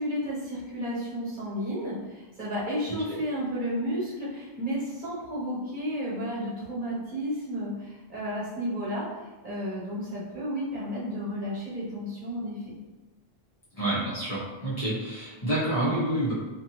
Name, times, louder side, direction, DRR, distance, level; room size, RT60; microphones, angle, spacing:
voice 1, 0.0-9.0 9.4-12.8, equal, 50° right, -7 dB, 1.1 m, -32 dB
voice 2, 13.8-16.3, right 1 dB, 40° left, -10 dB, 1.0 m, -28 dB
2.6 x 2.5 x 2.8 m, 1.1 s
omnidirectional pair, 1.1 m